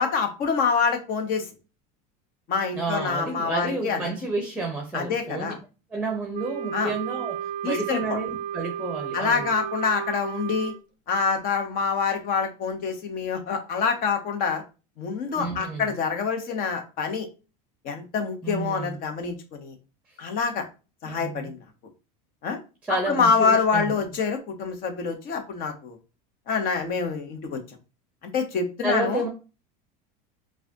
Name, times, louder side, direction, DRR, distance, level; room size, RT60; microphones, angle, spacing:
voice 1, 0.0-1.5 2.5-4.0 4.9-5.6 6.7-6.9 7.6-8.2 9.1-10.7 11.1-14.6 15.0-17.3 17.8-19.7 20.2-20.6 21.0-21.6 22.4-22.6 23.1-26.0 26.5-27.6 28.3-29.2, left 5 dB, 50° left, 5 dB, 1.0 m, -26 dB
voice 2, 2.7-5.5 5.9-9.5 15.4-15.8 18.4-18.9 21.1-21.5 22.9-23.9 28.8-29.3, right 2 dB, 5° right, 2 dB, 0.8 m, -30 dB
Wind instrument woodwind instrument, 6.3-10.8, right 10 dB, 40° right, 0.5 m, -33 dB
4.8 x 2.4 x 2.8 m, 0.31 s
supercardioid pair, 125°, 19 cm